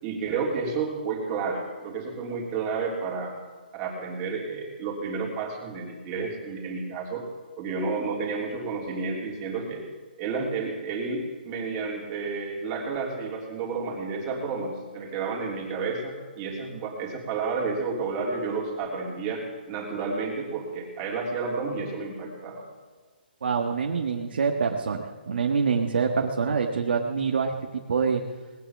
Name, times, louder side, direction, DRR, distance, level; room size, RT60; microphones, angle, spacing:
voice 1, 0.0-3.3 3.7-7.2 7.6-9.8 10.2-22.6, right 4 dB, 25° right, -2 dB, 3.5 m, -31 dB
voice 2, 23.4-28.2, right 5 dB, 70° right, 2 dB, 1.5 m, -26 dB
19.5 x 9.5 x 7.2 m, 1.5 s
hypercardioid pair, 165°, 6 cm